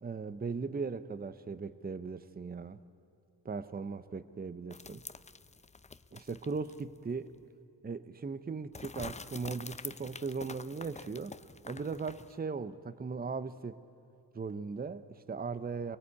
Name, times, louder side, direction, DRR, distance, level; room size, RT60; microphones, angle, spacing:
voice 1, 0.0-2.8 3.4-5.0 6.1-7.3 7.8-11.3 11.7-13.8 14.3-16.0, right 4 dB, 20° right, 13 dB, 0.8 m, -38 dB
sound 1, 4.7-7.0 7.3-7.4 8.7-12.4, left 4 dB, 15° left, 0.6 m, -47 dB
24.0 x 18.5 x 8.4 m, 2.6 s
supercardioid pair, 60°, 43 cm